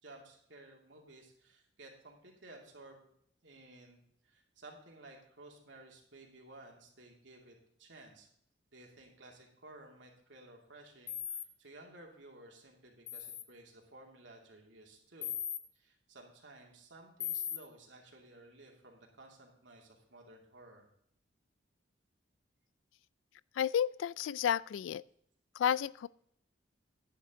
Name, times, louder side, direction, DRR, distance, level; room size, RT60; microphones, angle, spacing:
voice 1, 0.0-3.1 3.4-8.3 8.7-15.3 15.7-20.9, right 2 dB, 75° right, 0 dB, 2.7 m, -56 dB
sound 1, 11.1-11.4 13.1-13.4 15.2-15.6 17.2-17.6, left 10 dB, 35° left, 0.7 m, -38 dB
voice 2, 23.6-25.0 25.6-26.1, left 9 dB, 85° left, 22 dB, 0.3 m, -31 dB
10.5 x 10.0 x 3.8 m, 0.68 s
head